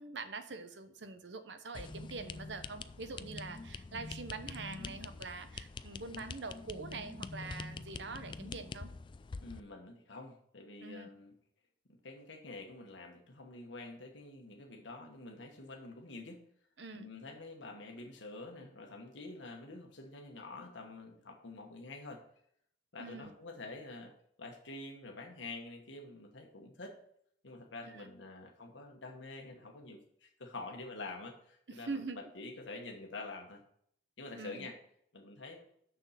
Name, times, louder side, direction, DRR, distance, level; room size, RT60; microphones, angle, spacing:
voice 1, 0.0-8.9 10.8-11.1 16.8-17.1 23.0-23.3 31.7-32.2 34.4-34.7, right 3 dB, 70° right, 9 dB, 0.9 m, -44 dB
sound 1, 1.7-9.6, left 3 dB, 25° left, 0.3 m, -45 dB
voice 2, 9.4-11.3 11.9-16.4 16.9-22.2 22.9-24.1 24.4-27.0 27.4-33.6 34.2-34.8 35.1-35.7, left 2 dB, 85° left, 2 dB, 1.3 m, -47 dB
6.7 x 6.3 x 5.7 m, 0.68 s
head